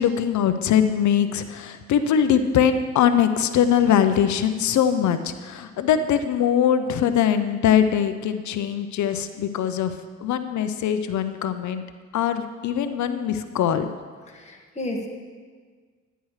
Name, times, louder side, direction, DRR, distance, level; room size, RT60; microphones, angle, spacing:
voice 1, 0.0-11.8 12.1-13.9, left 9 dB, 70° left, 9 dB, 0.6 m, -22 dB
voice 2, 14.3-15.1, left 1 dB, 20° left, 0 dB, 1.7 m, -32 dB
12.0 x 10.0 x 3.2 m, 1.6 s
cardioid pair, 90°, 30 cm